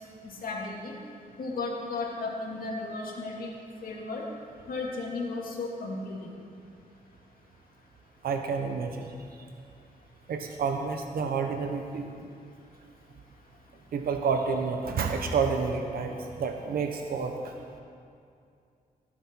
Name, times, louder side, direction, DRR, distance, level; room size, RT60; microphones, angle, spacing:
voice 1, 0.2-0.9 1.4-3.5 3.8-4.2 4.7-6.3, left 3 dB, 75° left, -1 dB, 2.3 m, -34 dB
voice 2, 8.2-9.1 10.3-12.1 13.9-17.5, right 5 dB, 90° right, 4 dB, 1.0 m, -29 dB
17.5 x 9.6 x 4.5 m, 2.4 s
wide cardioid pair, 170°, 15 cm